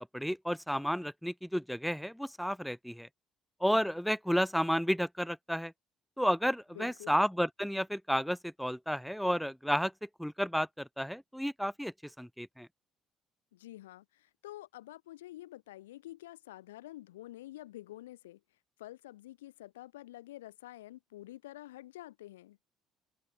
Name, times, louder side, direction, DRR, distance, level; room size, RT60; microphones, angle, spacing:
voice 1, 0.1-3.1 3.6-5.7 6.2-12.7, equal, ahead, 0.7 m, -32 dB
voice 2, 6.7-7.2 13.5-18.4 18.8-22.6, left 15 dB, 80° left, 3.0 m, -48 dB
open air
figure-of-eight pair, 50°, 0 cm